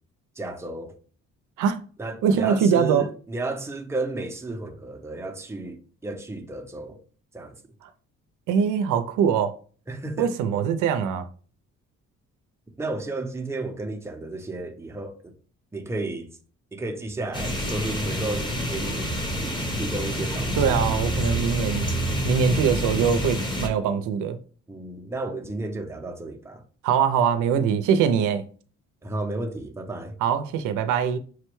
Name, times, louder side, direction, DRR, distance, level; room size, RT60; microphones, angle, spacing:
voice 1, 0.4-0.9 2.0-7.0 7.3-7.6 9.9-10.3 12.8-15.3 15.7-16.3 16.7-19.1 19.4-20.8 24.7-26.6 29.0-30.1, right 2 dB, 10° right, 0.6 m, -33 dB
voice 2, 2.2-3.1 8.5-9.6 10.2-11.3 20.6-21.9 22.2-24.4 26.8-28.4 30.2-31.2, right 7 dB, 90° right, 0.5 m, -22 dB
sound 1, 17.3-23.7, equal, 15° left, 0.9 m, -27 dB
5.9 x 2.2 x 3.0 m
cardioid pair, 90°, 30 cm